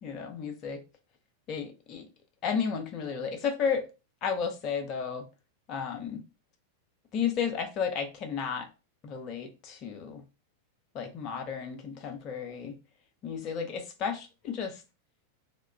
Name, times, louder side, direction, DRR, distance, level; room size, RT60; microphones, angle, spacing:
voice 1, 0.0-0.8 1.5-2.0 2.4-3.8 4.2-5.3 5.7-6.2 7.1-8.7 9.0-10.2 10.9-12.8 13.2-14.7, left 6 dB, 35° left, 0.5 m, -33 dB
2.2 x 2.2 x 3.3 m
figure-of-eight pair, 90°, 0 cm